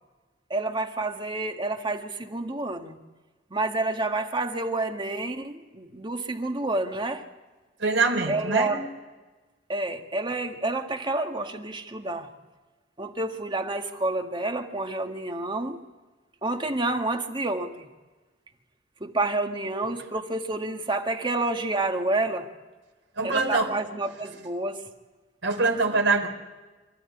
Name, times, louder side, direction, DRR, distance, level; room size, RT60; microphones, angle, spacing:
voice 1, 0.5-3.0 3.5-7.2 8.3-8.8 9.7-12.3 13.0-15.8 16.4-17.9 19.0-22.5 23.2-24.8, right 2 dB, 25° right, 4 dB, 1.7 m, -29 dB
voice 2, 7.8-8.8 23.2-23.7 25.4-26.3, right 3 dB, 85° right, 2 dB, 3.7 m, -24 dB
26.0 x 15.0 x 9.8 m, 1.2 s
head